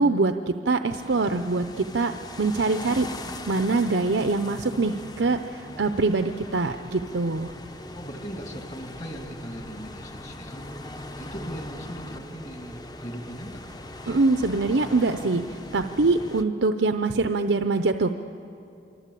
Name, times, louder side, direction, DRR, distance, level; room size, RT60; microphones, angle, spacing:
voice 1, 0.0-2.1 2.4-3.1 3.5-7.5 14.1-18.1, right 3 dB, 85° right, 7 dB, 0.8 m, -24 dB
sound 1, 0.9-16.4, left 1 dB, 20° left, 0.8 m, -40 dB
voice 2, 7.9-10.7 11.2-13.8, equal, 35° left, 3 dB, 2.3 m, -39 dB
26.5 x 24.0 x 8.4 m, 2.7 s
head